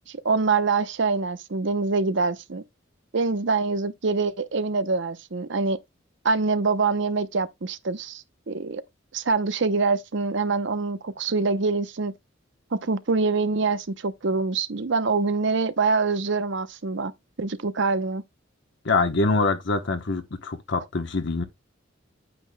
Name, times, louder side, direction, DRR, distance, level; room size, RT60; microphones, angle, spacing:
voice 1, 0.1-2.6 3.1-5.8 6.2-8.8 9.1-12.1 12.7-17.1 17.4-18.2, right 4 dB, 65° right, 0.7 m, -25 dB
voice 2, 18.8-21.4, left 3 dB, 65° left, 1.0 m, -24 dB
9.0 x 8.3 x 2.2 m
head